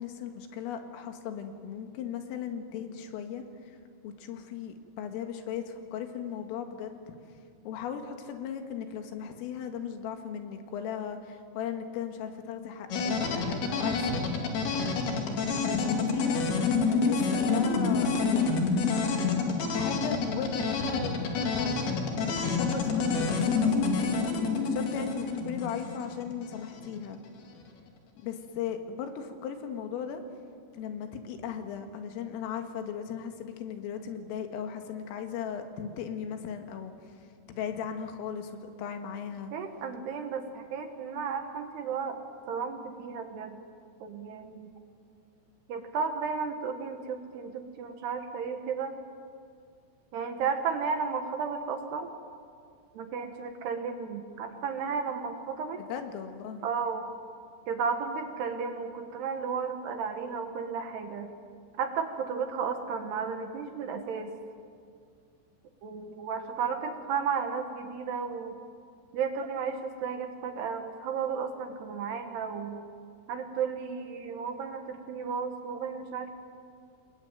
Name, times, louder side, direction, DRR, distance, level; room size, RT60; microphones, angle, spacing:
voice 1, 0.0-3.8 4.0-7.0 7.7-14.5 15.1-16.4 16.9-19.0 19.7-21.9 22.3-24.0 24.6-27.2 28.2-30.2 30.7-39.5 55.8-56.7, left 7 dB, 85° left, 6 dB, 4.4 m, -37 dB
sound 1, 12.9-26.8, left 4 dB, 55° left, 4.0 m, -28 dB
voice 2, 39.5-43.6 44.0-44.7 45.7-49.0 50.1-52.1 52.9-55.8 56.6-57.1 57.7-61.3 61.8-64.4 65.8-68.6 69.1-72.8 73.3-76.4, right 6 dB, 65° right, 6 dB, 3.1 m, -33 dB
28.5 x 20.5 x 9.2 m, 2.3 s
omnidirectional pair, 5.8 m